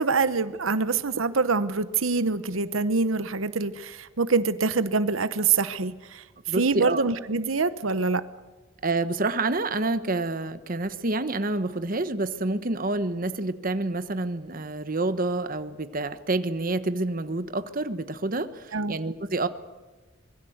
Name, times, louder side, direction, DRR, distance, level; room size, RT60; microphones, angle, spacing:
voice 1, 0.0-8.2 18.7-19.0, right 4 dB, 85° right, 13 dB, 1.0 m, -25 dB
voice 2, 6.5-7.0 8.8-19.5, right 2 dB, 45° right, 11 dB, 1.2 m, -28 dB
25.0 x 21.5 x 8.0 m, 1.2 s
head